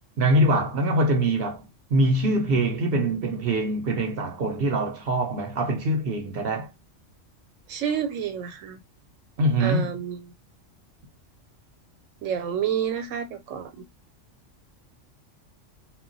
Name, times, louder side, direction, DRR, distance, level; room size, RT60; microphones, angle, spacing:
voice 1, 0.2-1.7 1.9-6.7 9.4-10.1, right 1 dB, 55° right, 0.8 m, -23 dB
voice 2, 7.7-8.8 9.6-10.2 12.2-13.8, right 8 dB, 85° right, 1.0 m, -29 dB
2.3 x 2.1 x 3.8 m
omnidirectional pair, 1.3 m